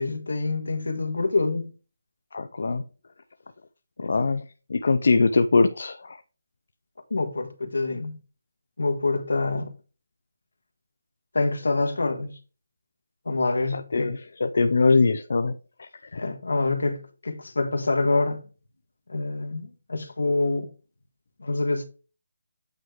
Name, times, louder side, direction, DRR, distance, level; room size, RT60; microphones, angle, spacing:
voice 1, 0.0-1.7 4.0-4.3 7.1-8.2 8.8-9.7 11.3-12.4 13.2-14.1 16.1-18.4 19.1-20.7 21.4-21.9, left 3 dB, 80° left, 1.4 m, -26 dB
voice 2, 2.3-2.8 4.0-4.4 4.7-6.2 13.7-16.2, left 3 dB, 65° left, 0.5 m, -22 dB
8.7 x 3.2 x 4.9 m
figure-of-eight pair, 155°, 0 cm